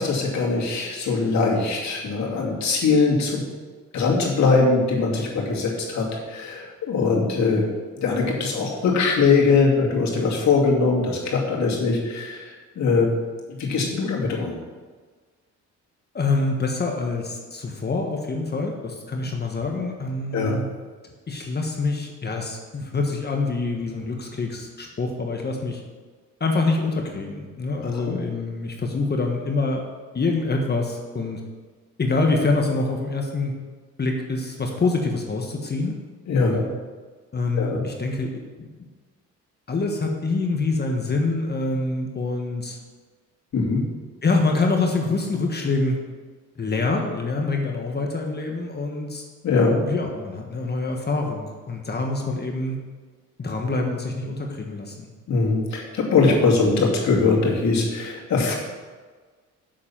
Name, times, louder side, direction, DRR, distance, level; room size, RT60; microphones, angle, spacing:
voice 1, 0.0-3.4 3.9-7.7 8.0-13.1 13.5-14.5 20.3-20.6 27.9-28.2 36.3-36.6 37.5-37.8 43.5-43.8 49.4-49.8 55.3-58.6, left 4 dB, 65° left, -2 dB, 2.6 m, -21 dB
voice 2, 16.1-20.6 21.3-25.8 26.4-29.8 30.1-31.4 32.0-33.5 34.0-36.0 36.4-36.7 37.3-38.7 39.7-42.8 44.2-46.0 46.6-49.2 49.8-52.8 53.4-55.1, left 3 dB, 35° left, 1 dB, 1.4 m, -25 dB
7.6 x 6.6 x 7.4 m, 1.4 s
cardioid pair, 90°, 30 cm